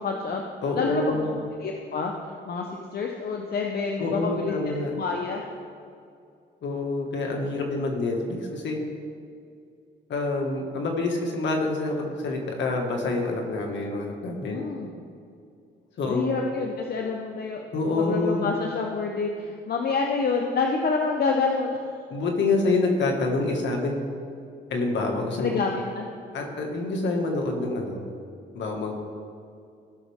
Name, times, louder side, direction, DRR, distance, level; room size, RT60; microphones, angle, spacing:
voice 1, 0.0-0.4 0.7-2.1 2.5-2.7 2.9-4.5 4.9-5.4 14.4-14.9 16.1-17.6 18.0-21.8 25.4-26.1, left 4 dB, 50° left, 1 dB, 1.0 m, -27 dB
voice 2, 0.6-1.3 4.0-4.9 6.6-8.8 10.1-14.6 16.0-16.3 17.7-18.5 22.1-24.0 24.7-25.6 26.3-28.0 28.5-28.9, left 3 dB, 65° left, 1 dB, 2.0 m, -27 dB
18.0 x 6.0 x 3.6 m, 2.4 s
cardioid pair, 90°, 20 cm